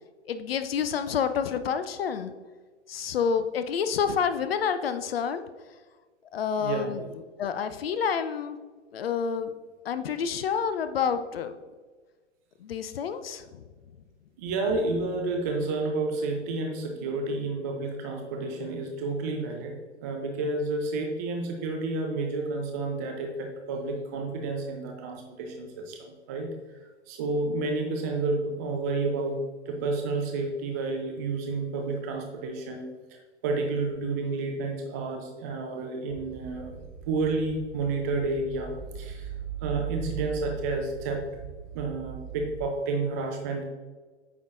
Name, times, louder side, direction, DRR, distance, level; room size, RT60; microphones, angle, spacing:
voice 1, 0.3-2.3 2.9-5.4 6.3-7.0 7.4-8.6 8.9-9.5 9.8-11.6 12.6-13.6, left 7 dB, 55° left, 10 dB, 0.5 m, -28 dB
voice 2, 6.6-7.0 14.4-19.8 20.0-26.5 27.1-32.9 33.4-39.3 39.6-41.2 41.7-43.6, right 3 dB, 15° right, 2 dB, 0.3 m, -30 dB
sound 1, 36.1-42.7, right 8 dB, 50° right, 0.9 m, -40 dB
8.5 x 5.5 x 2.4 m, 1.4 s
figure-of-eight pair, 115°, 35 cm